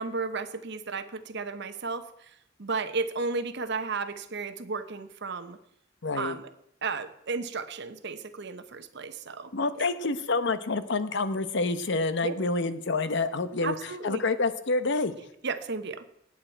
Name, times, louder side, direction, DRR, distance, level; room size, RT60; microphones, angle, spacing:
voice 1, 0.0-2.1 2.6-5.6 6.1-6.4 6.8-9.5 9.8-9.9 12.2-12.3 13.6-14.2 15.4-16.0, right 4 dB, 60° right, 10 dB, 0.9 m, -33 dB
voice 2, 6.0-6.4 9.5-15.1, left 3 dB, 65° left, 12 dB, 0.9 m, -28 dB
18.5 x 8.7 x 4.5 m, 0.78 s
head